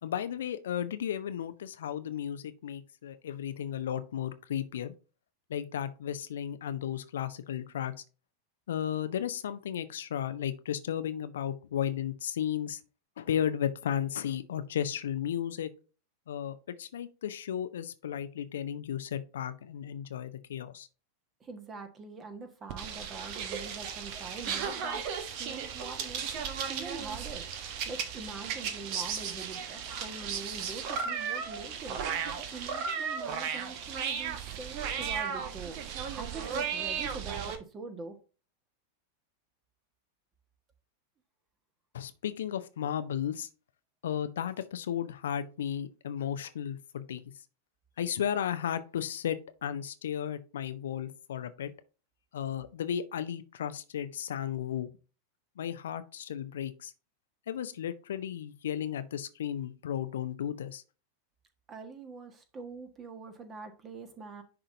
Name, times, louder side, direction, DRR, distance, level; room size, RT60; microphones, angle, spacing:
voice 1, 0.0-4.9 5.5-7.9 8.7-12.8 13.2-15.7 16.3-20.9 41.9-43.5 44.0-47.2 48.0-51.7 52.3-54.9 55.6-56.9 57.5-60.8, left 9 dB, 60° left, 0.6 m, -34 dB
voice 2, 21.4-25.1 25.4-26.4 26.7-32.0 32.4-38.2 61.7-64.4, right 4 dB, 25° right, 1.6 m, -44 dB
sound 1, 22.7-37.6, right 7 dB, 45° right, 1.2 m, -35 dB
10.5 x 3.8 x 2.7 m
figure-of-eight pair, 90°, 0 cm